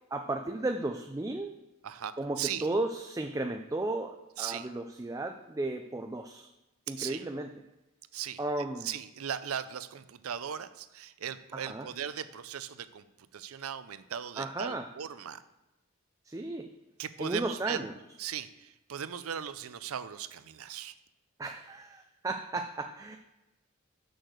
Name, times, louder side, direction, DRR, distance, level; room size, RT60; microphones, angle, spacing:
voice 1, 0.1-1.5 2.2-6.5 6.9-7.5 8.4-8.9 11.5-11.9 14.4-14.9 16.3-16.7 17.2-17.9 21.4-23.2, right 2 dB, 15° right, 4 dB, 0.4 m, -34 dB
voice 2, 1.8-2.7 4.4-4.7 7.0-7.2 8.1-8.4 8.8-13.1 13.3-15.4 17.0-17.8 18.2-20.9, right 8 dB, 85° right, 13 dB, 0.5 m, -38 dB
6.5 x 6.4 x 6.4 m, 0.99 s
head